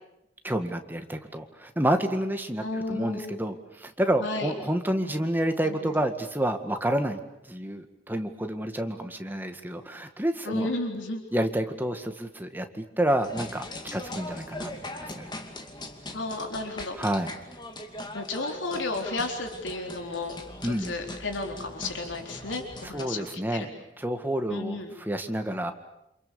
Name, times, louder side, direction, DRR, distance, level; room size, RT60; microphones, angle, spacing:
voice 1, 0.4-7.2 7.5-10.7 11.3-13.7 13.9-15.3 17.0-17.3 20.6-20.9 22.9-23.7 24.0-25.7, right 1 dB, 10° right, 6 dB, 1.9 m, -29 dB
voice 2, 2.6-3.4 4.2-4.5 5.6-5.9 10.4-11.2 16.1-17.0 18.1-20.4 20.6-23.7 24.5-24.9, left 2 dB, 80° left, 3 dB, 4.0 m, -33 dB
sound 1, 13.2-23.0, left 1 dB, 25° left, 2.6 m, -41 dB
28.5 x 27.5 x 7.1 m, 0.86 s
head